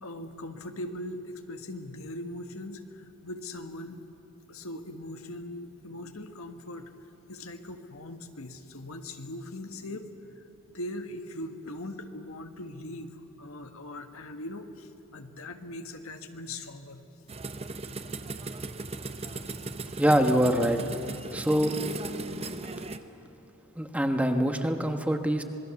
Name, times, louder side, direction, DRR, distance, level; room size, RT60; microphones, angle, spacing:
voice 1, 0.0-4.0 4.5-6.9 7.3-10.1 10.7-17.1 19.1-19.6, left 1 dB, 90° left, 6 dB, 1.6 m, -40 dB
sound 1, 17.3-23.0, right 3 dB, 30° right, 0.9 m, -37 dB
voice 2, 20.0-20.8 21.3-21.7 23.8-25.4, equal, 5° right, 5 dB, 1.2 m, -24 dB
26.5 x 20.5 x 7.1 m, 2.7 s
head